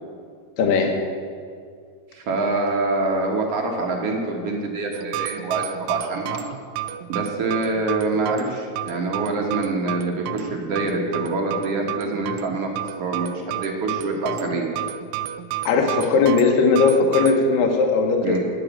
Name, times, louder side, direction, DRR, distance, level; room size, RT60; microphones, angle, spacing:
voice 1, 0.6-0.9 15.7-18.4, left 4 dB, 75° left, 2 dB, 2.6 m, -18 dB
voice 2, 2.1-6.4 7.1-12.7 13.0-14.7 18.2-18.4, right 3 dB, 60° right, 1 dB, 1.7 m, -25 dB
sound 1, 4.9-17.4, right 12 dB, 80° right, 2.2 m, -31 dB
9.9 x 7.5 x 8.7 m, 2.1 s
omnidirectional pair, 4.3 m